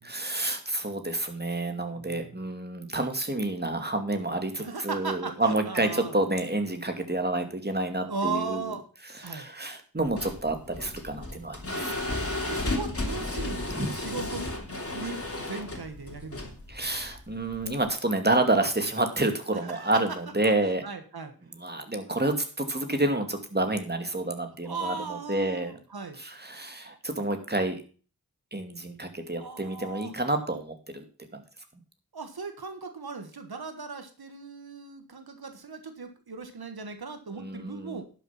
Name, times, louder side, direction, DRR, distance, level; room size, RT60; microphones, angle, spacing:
voice 1, 0.0-8.7 9.1-11.6 11.8-11.9 13.7-14.0 16.7-20.8 21.5-25.8 26.2-27.8 28.5-31.0 31.3-31.4 37.3-38.0, right 2 dB, 25° right, 6 dB, 2.4 m, -29 dB
voice 2, 2.0-2.4 4.6-6.1 8.0-8.8 9.2-9.5 12.4-14.5 14.9-16.6 19.6-19.9 20.8-21.3 24.6-26.2 29.4-30.1 32.1-38.0, right 4 dB, 85° right, 7 dB, 1.5 m, -37 dB
sound 1, 10.0-17.9, left 2 dB, 40° left, 2.9 m, -34 dB
11.0 x 6.9 x 5.8 m, 0.37 s
wide cardioid pair, 45°, 37 cm